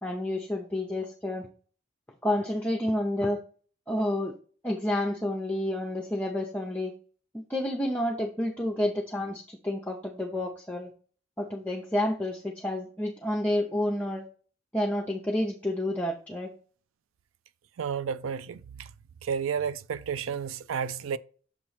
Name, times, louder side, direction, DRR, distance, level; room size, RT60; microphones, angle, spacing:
voice 1, 0.0-1.5 2.2-3.4 3.9-4.3 4.6-6.9 7.3-10.9 11.4-14.2 14.7-16.5, left 1 dB, 5° left, 0.5 m, -29 dB
voice 2, 17.8-18.9 19.2-21.2, right 7 dB, 85° right, 0.4 m, -31 dB
6.9 x 3.0 x 5.5 m
head